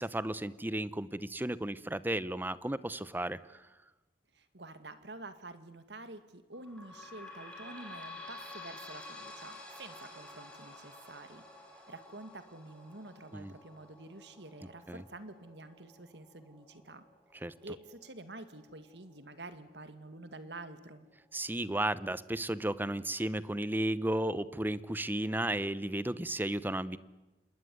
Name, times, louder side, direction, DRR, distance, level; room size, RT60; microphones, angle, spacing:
voice 1, 0.0-3.6 13.3-13.5 14.9-15.0 17.4-17.5 21.3-27.0, right 1 dB, 10° right, 17 dB, 0.9 m, -34 dB
voice 2, 4.3-11.4 11.7-17.0 17.6-21.1, right 2 dB, 75° right, 11 dB, 2.3 m, -48 dB
sound 1, 6.5-19.7 20.3-20.4 20.6-20.7 21.5-21.6, left 2 dB, 5° left, 5.5 m, -51 dB
27.0 x 21.0 x 9.7 m, 1.0 s
head